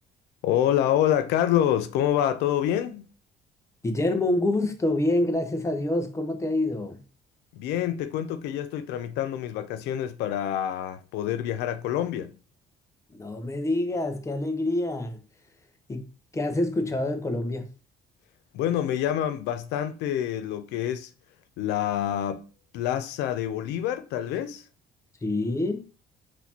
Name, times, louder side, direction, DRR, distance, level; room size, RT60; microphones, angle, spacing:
voice 1, 0.4-3.1 7.6-12.3 18.5-21.1 21.6-22.4 22.7-24.6, left 11 dB, 90° left, 0.5 m, -27 dB
voice 2, 3.8-7.0 13.1-15.2 15.9-17.7 25.2-25.8, left 1 dB, 15° left, 0.8 m, -27 dB
4.1 x 2.8 x 4.3 m
cardioid pair, 110°, 17 cm